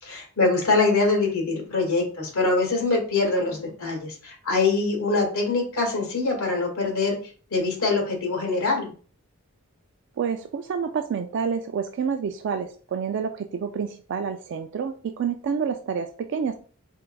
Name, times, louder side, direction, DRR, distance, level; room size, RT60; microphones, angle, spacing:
voice 1, 0.0-7.2 7.5-8.9, left 3 dB, 80° left, 0 dB, 1.8 m, -24 dB
voice 2, 10.2-16.6, right 6 dB, 55° right, 6 dB, 0.3 m, -28 dB
4.4 x 3.8 x 2.2 m, 0.40 s
head